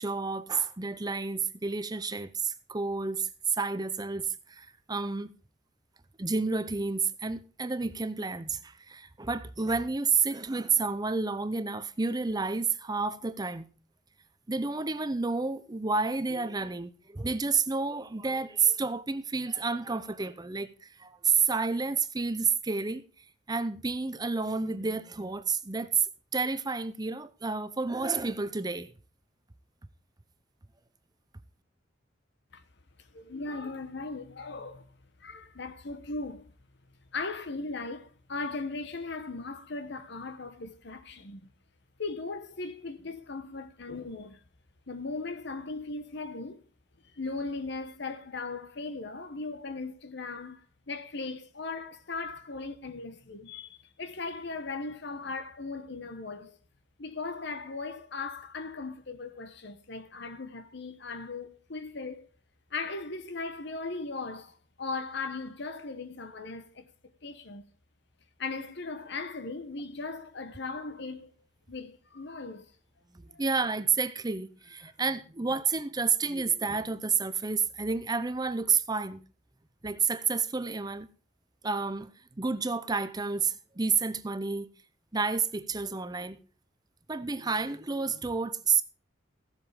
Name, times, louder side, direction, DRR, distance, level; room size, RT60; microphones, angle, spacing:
voice 1, 0.0-5.3 6.2-13.7 14.5-28.9 73.1-79.2 79.8-81.1 81.6-84.7 85.1-86.4 87.1-88.8, right 4 dB, 20° right, 0.7 m, -30 dB
voice 2, 33.0-34.9 35.2-36.5 37.1-41.5 42.0-44.4 44.9-46.6 47.1-56.6 57.0-62.3 62.7-66.9 67.2-67.6 68.4-71.3 71.7-72.7 73.3-73.4, left 3 dB, 65° left, 1.2 m, -38 dB
16.0 x 7.8 x 5.0 m
head